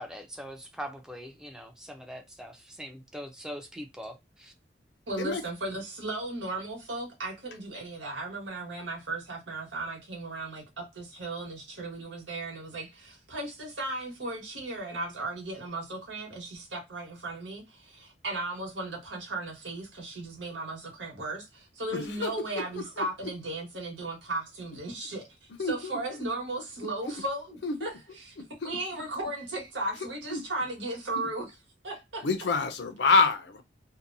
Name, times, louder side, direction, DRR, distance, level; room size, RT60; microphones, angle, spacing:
voice 1, 0.0-4.5, equal, 5° right, 0.5 m, -42 dB
voice 2, 5.1-28.4 28.6-31.5 31.8-32.2, right 2 dB, 90° right, 1.3 m, -36 dB
voice 3, 21.9-22.3 22.6-22.7 23.0-23.1 25.6-25.9 27.6-27.7 30.3-30.4 32.2-33.6, left 4 dB, 65° left, 0.6 m, -26 dB
2.7 x 2.2 x 2.5 m
head